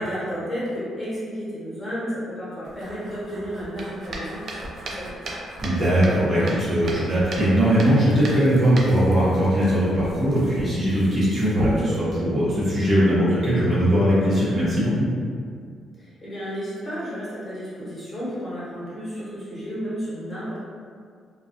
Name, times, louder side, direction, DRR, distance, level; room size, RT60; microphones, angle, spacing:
voice 1, 0.0-5.1 16.0-20.6, equal, 25° left, -10 dB, 1.2 m, -32 dB
sound 1, 2.6-12.0, right 1 dB, 55° right, 0.4 m, -36 dB
voice 2, 5.6-15.1, equal, 40° right, -10 dB, 1.0 m, -20 dB
2.3 x 2.3 x 2.6 m, 2.2 s
cardioid pair, 90°, 0 cm